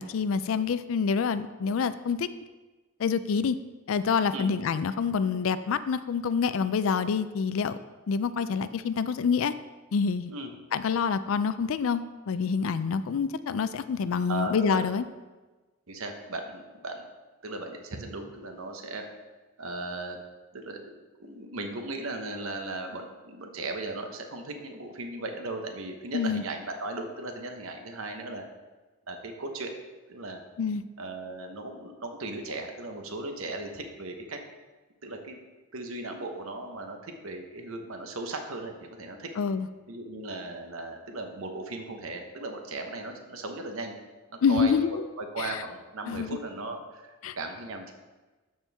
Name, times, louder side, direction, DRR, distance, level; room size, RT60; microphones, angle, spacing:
voice 1, 0.0-2.3 3.0-3.6 3.9-7.8 8.1-9.5 9.9-10.3 10.7-15.0 26.1-26.4 30.6-30.8 39.4-39.7 44.4-45.0 45.4-45.5 46.1-46.4 47.2-47.4, left 6 dB, 70° left, 14 dB, 0.4 m, -27 dB
voice 2, 14.3-14.8 15.9-17.1 17.4-19.0 19.6-20.2 20.5-20.9 21.2-28.4 29.1-29.7 30.1-30.4 31.0-34.4 35.0-35.4 35.7-39.3 39.9-43.9 44.3-44.8 45.2-47.9, right 2 dB, 75° right, 4 dB, 1.0 m, -37 dB
12.5 x 4.5 x 3.5 m, 1.2 s
head